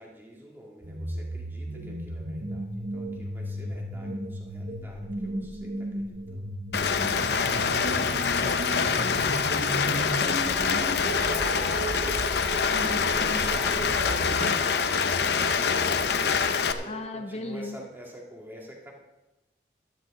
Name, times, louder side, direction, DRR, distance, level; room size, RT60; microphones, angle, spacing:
voice 1, 0.0-6.5 9.2-10.6 11.3-18.9, equal, 10° right, -2 dB, 2.2 m, -46 dB
sound 1, 0.8-14.6, right 1 dB, 50° right, 1.1 m, -35 dB
Rain, 6.7-16.7, left 6 dB, 70° left, 0.7 m, -25 dB
voice 2, 8.4-9.7 9.9-11.4 16.8-17.8, left 2 dB, 35° left, 5 dB, 0.6 m, -38 dB
13.5 x 12.5 x 3.8 m, 1.1 s
head